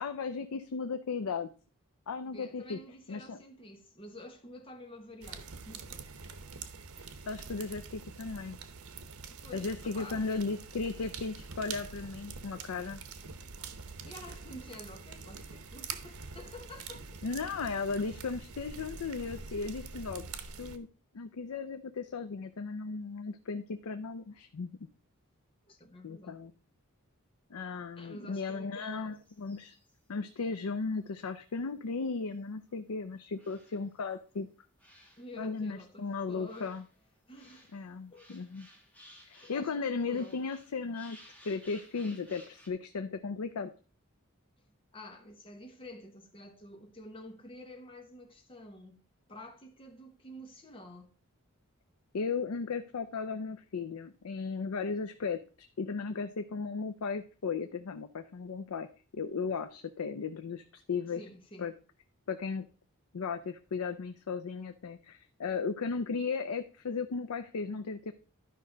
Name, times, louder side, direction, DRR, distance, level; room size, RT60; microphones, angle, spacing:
voice 1, 0.0-1.5 2.1-2.8 3.1-3.4 7.0-8.6 9.5-13.0 17.2-20.3 20.6-20.9 21.1-24.7 26.0-26.5 27.5-29.7 30.1-34.5 35.4-36.8 37.7-38.7 39.3-41.2 41.4-43.7 52.1-55.4 55.8-58.9 59.1-61.2 61.6-61.7 62.3-62.7 63.1-68.1, left 4 dB, 90° left, 0.5 m, -36 dB
voice 2, 2.3-6.1 9.3-10.3 14.0-17.2 25.6-26.4 28.0-29.2 35.2-36.8 37.3-37.7 38.1-38.3 39.4-40.4 44.9-49.0 49.3-51.1 61.1-61.7, left 1 dB, 25° left, 1.1 m, -49 dB
sound 1, 5.2-20.8, right 5 dB, 90° right, 0.9 m, -45 dB
sound 2, 29.1-30.0 30.6-30.7 31.0-31.1 32.6-32.7 33.4-34.3 34.8-35.3 36.0-39.9 40.1-42.7, equal, 5° left, 1.3 m, -58 dB
12.0 x 5.3 x 3.9 m
head